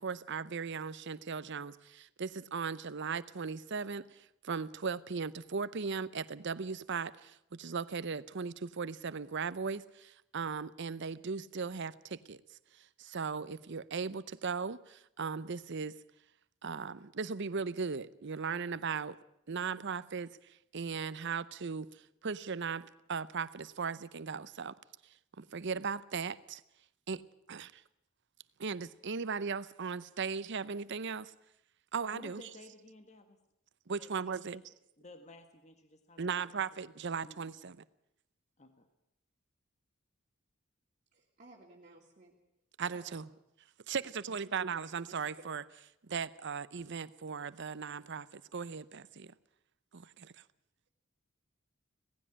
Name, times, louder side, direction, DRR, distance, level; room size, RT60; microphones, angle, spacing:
voice 1, 0.0-12.4 12.8-16.0 16.6-19.2 19.5-24.7 25.4-26.6 27.1-27.8 28.6-31.3 31.9-32.5 33.9-34.7 36.2-37.8 42.8-43.3 43.9-45.6 46.1-49.3 49.9-50.3, right 5 dB, 60° right, 0.7 m, -38 dB
voice 2, 32.1-33.4 34.0-34.6 35.0-36.5 37.2-37.3 38.6-38.9, left 2 dB, 35° left, 1.5 m, -54 dB
voice 3, 41.1-42.3 42.9-43.2 44.9-45.2, right 2 dB, 40° right, 2.7 m, -57 dB
18.0 x 15.5 x 9.8 m
head